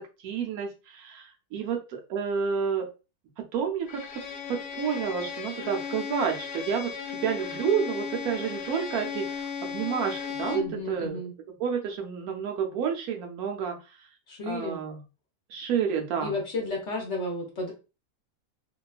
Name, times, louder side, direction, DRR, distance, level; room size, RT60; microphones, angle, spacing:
voice 1, 0.2-2.9 3.4-4.2 4.5-11.2 11.6-13.8 14.5-15.0 15.5-16.3, right 7 dB, 75° right, 3 dB, 1.0 m, -30 dB
Bowed string instrument, 3.9-10.8, left 6 dB, 75° left, 1.1 m, -36 dB
voice 2, 10.5-11.3 14.3-14.8 16.2-17.7, left 2 dB, 55° left, -1 dB, 1.0 m, -32 dB
2.8 x 2.2 x 2.3 m, 0.30 s
omnidirectional pair, 1.6 m